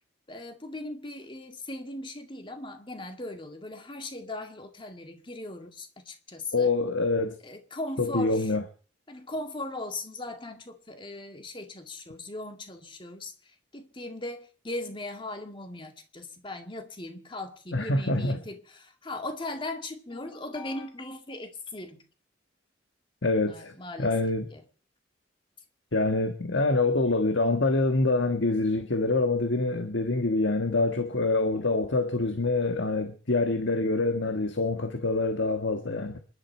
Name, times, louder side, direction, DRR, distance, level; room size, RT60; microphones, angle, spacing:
voice 1, 0.3-6.7 7.4-8.5 9.1-22.0 23.5-24.6, left 2 dB, 25° left, 2.1 m, -39 dB
voice 2, 6.5-7.4 8.0-8.6 17.7-18.4 23.2-24.5 25.9-36.2, left 2 dB, 70° left, 1.5 m, -26 dB
27.5 x 11.5 x 4.5 m
head